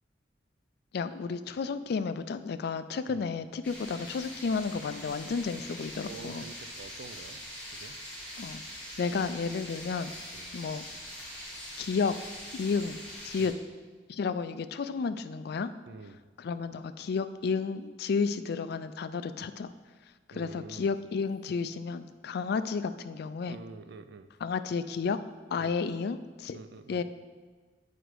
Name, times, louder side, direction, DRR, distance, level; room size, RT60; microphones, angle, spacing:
voice 1, 0.9-6.4 8.4-8.6 9.0-10.1 10.5-10.8 11.8-12.1 12.5-13.5 14.1-15.7 16.4-19.7 20.3-23.6 24.4-25.2 25.5-26.6 26.9-27.0, left 5 dB, 60° left, 12 dB, 0.4 m, -32 dB
sound 1, 3.6-13.5, equal, 5° left, 2.2 m, -43 dB
voice 2, 6.0-7.4 7.7-8.0 10.3-10.5 13.4-13.6 15.9-16.2 20.3-20.9 23.5-24.3 25.6-25.8 26.5-27.0, right 4 dB, 65° right, 10 dB, 0.4 m, -47 dB
8.2 x 5.0 x 4.7 m, 1.4 s
head